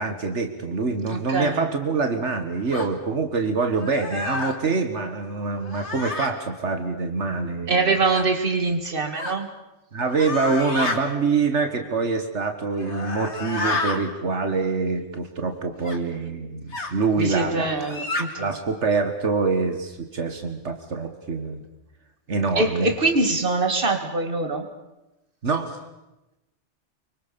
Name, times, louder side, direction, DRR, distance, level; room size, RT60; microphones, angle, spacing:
voice 1, 0.0-8.0 9.9-18.0 18.4-21.6 22.3-22.9 25.4-25.8, right 4 dB, 80° right, 7 dB, 2.0 m, -25 dB
voice 2, 1.1-1.6 7.7-9.5 17.2-18.5 22.6-24.6, right 3 dB, 50° right, 6 dB, 2.4 m, -23 dB
sound 1, 2.7-2.9 3.8-4.6 5.6-6.3 8.1-8.3 9.2-9.4 10.1-11.0 12.7-14.0 15.8-16.0 16.7-16.9 17.7-18.2, left 2 dB, 75° left, 2.7 m, -29 dB
25.0 x 24.0 x 7.0 m, 0.99 s
omnidirectional pair, 1.2 m